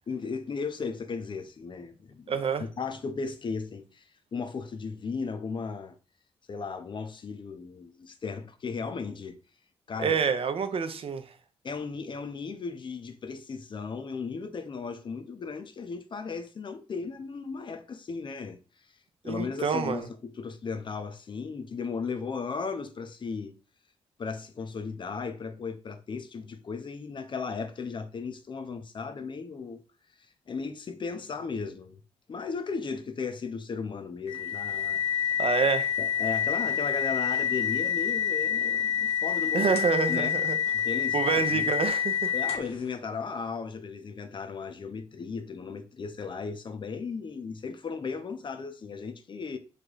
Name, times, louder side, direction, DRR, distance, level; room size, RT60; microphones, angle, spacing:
voice 1, 0.1-4.1 4.3-6.0 6.5-9.4 9.9-10.2 11.6-18.6 19.2-23.5 24.2-29.8 30.5-32.0 32.3-35.4 36.0-39.7 40.1-40.4 40.7-41.7 42.3-49.6, left 5 dB, 45° left, 0.5 m, -36 dB
voice 2, 2.3-2.6 10.0-11.2 19.2-20.1 35.4-36.0 39.5-40.6 41.1-42.3, right 6 dB, 55° right, 0.5 m, -27 dB
sound 1, 34.3-42.8, left 8 dB, 65° left, 1.1 m, -28 dB
3.3 x 2.2 x 3.8 m
cardioid pair, 60°, 12 cm